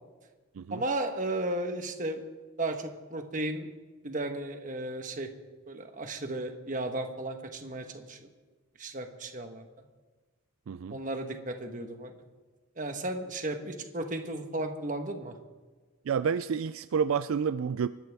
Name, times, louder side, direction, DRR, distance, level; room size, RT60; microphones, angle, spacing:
voice 1, 0.7-2.2 2.6-3.8 4.0-5.3 5.7-8.2 8.8-9.6 10.9-12.1 12.8-15.3, right 2 dB, 35° right, 5 dB, 1.3 m, -34 dB
voice 2, 10.7-11.0 16.1-17.9, right 6 dB, 70° right, 13 dB, 0.3 m, -29 dB
25.0 x 12.0 x 3.5 m, 1.3 s
head